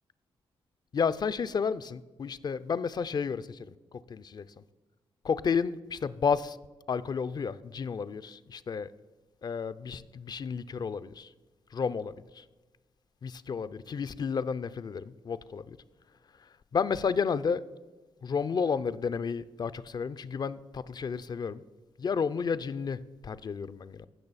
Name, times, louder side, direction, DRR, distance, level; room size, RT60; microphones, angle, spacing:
voice 1, 0.9-4.5 5.2-6.6 6.9-8.9 9.4-11.3 11.7-12.4 13.2-15.8 16.4-17.6 18.2-21.6 22.0-24.1, left 6 dB, 45° left, 0.4 m, -32 dB
15.5 x 6.2 x 4.1 m
cardioid pair, 80°, 10 cm